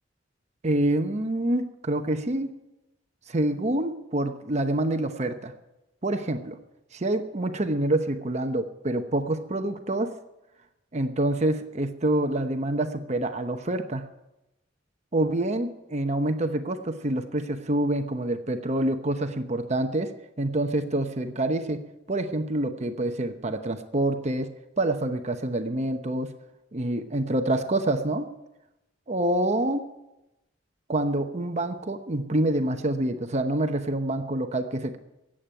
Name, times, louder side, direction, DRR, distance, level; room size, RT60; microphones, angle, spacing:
voice 1, 0.6-2.5 3.3-5.5 6.0-6.6 6.9-10.1 10.9-14.1 15.1-20.1 20.4-24.5 24.8-26.3 26.7-28.3 29.1-29.9 30.9-35.0, right 1 dB, 35° right, 7 dB, 0.9 m, -27 dB
14.5 x 8.8 x 9.0 m, 0.94 s
head